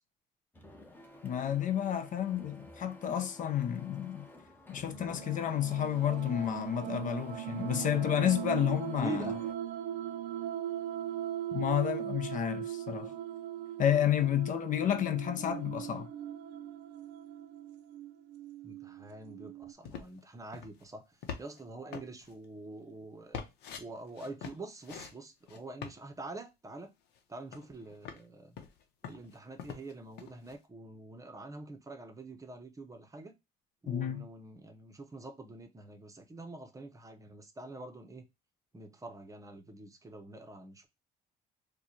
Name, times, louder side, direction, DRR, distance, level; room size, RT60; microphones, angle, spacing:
Printer, 0.5-9.5, left 1 dB, 10° left, 0.8 m, -52 dB
voice 1, 1.2-4.3 4.7-9.3 11.5-13.1 13.8-16.1 33.9-34.3, left 10 dB, 50° left, 0.5 m, -31 dB
sound 1, 4.9-19.7, right 11 dB, 90° right, 0.5 m, -39 dB
voice 2, 8.9-9.4 18.6-23.4 23.8-26.9 27.3-28.6 29.1-33.3 33.8-38.2 38.7-40.9, right 2 dB, 20° right, 0.7 m, -45 dB
sound 2, 19.8-20.2 20.5-20.8 21.2-21.6 21.9-22.3 23.3-23.8 24.2-25.1 25.5-26.0 27.2-27.3 27.5-28.2 28.6-29.9 30.2-30.5, left 7 dB, 80° left, 0.7 m, -44 dB
4.6 x 2.2 x 2.6 m
cardioid pair, 110°, 17 cm